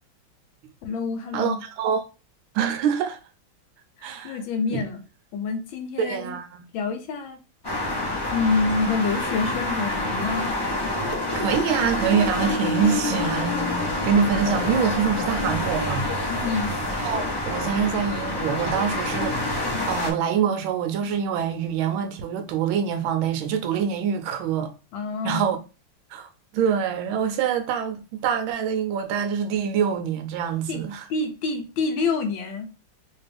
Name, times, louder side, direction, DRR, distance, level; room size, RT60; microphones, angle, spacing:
voice 1, 0.8-1.6 4.0-5.0 5.3-6.4 6.7-7.4 8.3-10.4 16.3-16.7 24.9-25.6 30.7-30.8 31.1-32.7, left 4 dB, 75° left, 1.4 m, -27 dB
voice 2, 1.3-2.0 2.5-3.2 4.0-4.4 4.7-4.8 6.0-6.7 11.3-16.1 16.9-24.7 25.2-25.6 26.1-31.1, right 7 dB, 80° right, 1.4 m, -25 dB
sound 1, 7.6-20.1, left 1 dB, 25° left, 0.6 m, -27 dB
3.3 x 3.0 x 3.3 m
omnidirectional pair, 2.2 m